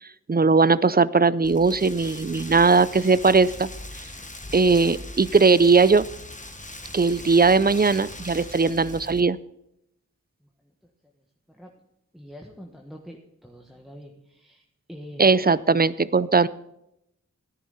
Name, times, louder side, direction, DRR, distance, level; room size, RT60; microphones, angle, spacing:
voice 1, 0.3-3.7 4.5-6.1 6.9-9.4 15.2-16.5, right 4 dB, 30° right, 18 dB, 0.5 m, -19 dB
Rain, 1.4-9.2, left 1 dB, 25° left, 1.2 m, -40 dB
voice 2, 12.1-14.6 14.9-15.5, equal, ahead, 1 dB, 1.4 m, -44 dB
14.0 x 10.5 x 4.1 m, 0.78 s
wide cardioid pair, 45°, 31 cm